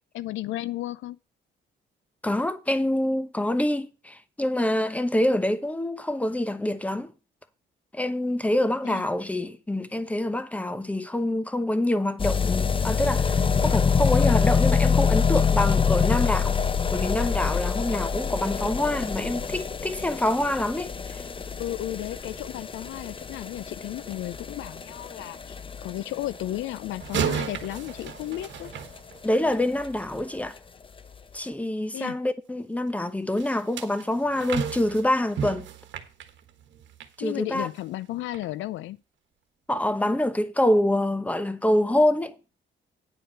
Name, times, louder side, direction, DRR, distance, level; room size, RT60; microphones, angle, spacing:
voice 1, 0.1-1.2 8.8-9.1 21.6-28.7 31.9-32.2 37.2-39.0, left 15 dB, 80° left, 0.5 m, -34 dB
voice 2, 2.2-7.1 7.9-16.6 16.9-21.2 29.2-30.6 31.3-35.7 37.2-37.7 39.7-42.3, left 1 dB, 5° left, 1.0 m, -26 dB
sound 1, 12.2-29.0 29.2-29.3 29.5-29.6 29.8-29.9 30.2-30.3 31.0-31.1, left 6 dB, 25° left, 0.7 m, -26 dB
sound 2, 27.0-29.6 33.4-37.2 37.6-37.8 38.3-38.5, right 8 dB, 65° right, 1.4 m, -33 dB
9.8 x 4.6 x 7.7 m
cardioid pair, 90°, 20 cm